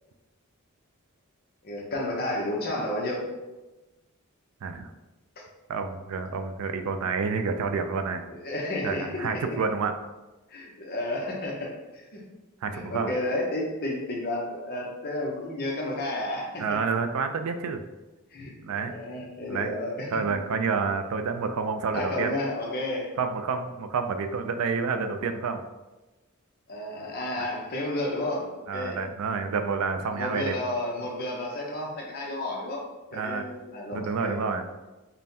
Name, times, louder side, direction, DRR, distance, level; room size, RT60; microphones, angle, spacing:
voice 1, 1.6-3.2 8.3-9.4 10.5-11.8 12.1-12.2 12.7-16.8 18.3-20.1 21.9-23.1 26.7-29.0 30.1-32.8 33.1-34.6, left 1 dB, 45° left, -1 dB, 0.7 m, -32 dB
voice 2, 4.6-4.9 5.7-8.2 8.8-10.0 12.6-13.1 16.6-17.8 18.6-18.9 19.5-19.7 20.1-22.4 23.2-25.6 28.7-30.6 33.1-33.4 33.9-34.6, right 5 dB, 75° right, 7 dB, 0.3 m, -29 dB
5.3 x 2.1 x 2.7 m, 1.1 s
head